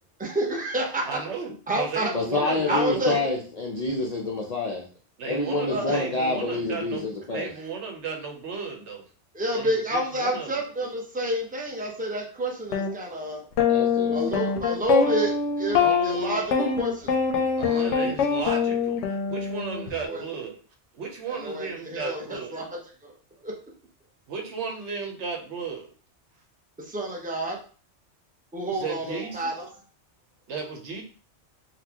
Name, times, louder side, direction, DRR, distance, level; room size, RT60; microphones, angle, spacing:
voice 1, 0.2-1.2 1.7-2.1 2.7-3.2 5.6-6.0 9.3-13.4 14.1-16.4 16.8-17.2 20.0-20.2 21.3-22.6 23.0-23.1 23.4-23.5 26.8-27.6 28.5-29.7, right 1 dB, 10° right, -1 dB, 0.5 m, -29 dB
voice 2, 1.0-3.0 5.2-9.0 9.5-10.6 15.0-15.1 15.7-16.4 17.6-20.5 20.9-22.6 24.3-25.9 28.7-29.5 30.5-31.0, right 5 dB, 80° right, 1 dB, 1.1 m, -34 dB
voice 3, 2.1-4.8 5.3-7.5 13.7-14.5, left 2 dB, 55° left, -1 dB, 0.4 m, -28 dB
sound 1, 12.7-12.9 13.6-19.9, left 6 dB, 90° left, 0.9 m, -24 dB
4.2 x 2.2 x 2.8 m, 0.41 s
omnidirectional pair, 1.2 m